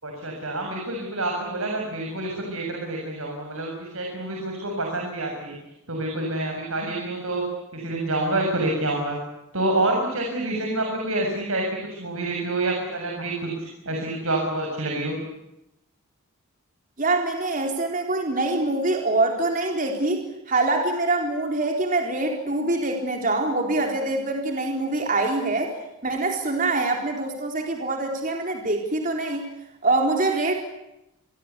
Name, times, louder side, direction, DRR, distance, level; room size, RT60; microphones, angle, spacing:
voice 1, 0.0-5.6 5.9-7.4 7.7-9.2 9.5-11.6 11.9-15.2, right 2 dB, 70° right, 1 dB, 7.0 m, -27 dB
voice 2, 17.0-25.8 26.0-29.4 29.8-30.5, right 2 dB, 35° right, 2 dB, 4.1 m, -24 dB
28.0 x 23.0 x 8.3 m, 0.90 s
head